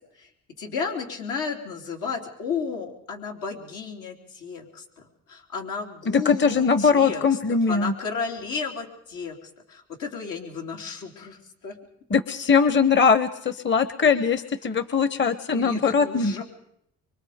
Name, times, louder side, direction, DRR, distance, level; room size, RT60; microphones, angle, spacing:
voice 1, 0.6-7.4 7.7-11.8 15.5-16.4, left 5 dB, 90° left, 1 dB, 3.6 m, -33 dB
voice 2, 6.1-7.9 12.1-16.3, left 5 dB, 40° left, 13 dB, 1.1 m, -21 dB
24.5 x 24.0 x 5.1 m, 0.74 s
cardioid pair, 90°, 30 cm